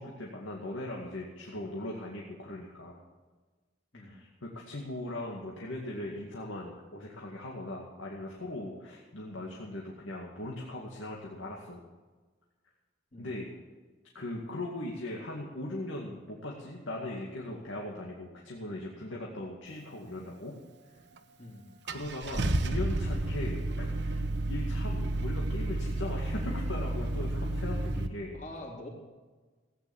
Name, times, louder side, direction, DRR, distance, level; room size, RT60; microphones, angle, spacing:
voice 1, 0.0-3.0 3.9-11.8 13.2-13.5 14.1-20.6 21.8-28.4, left 1 dB, 85° left, -2 dB, 2.2 m, -39 dB
Car / Engine starting, 21.2-21.3 21.9-28.1, right 1 dB, 60° right, 1.0 m, -31 dB
voice 2, 28.3-28.9, left 1 dB, 35° left, -1 dB, 3.3 m, -45 dB
16.0 x 9.6 x 7.3 m, 1.3 s
head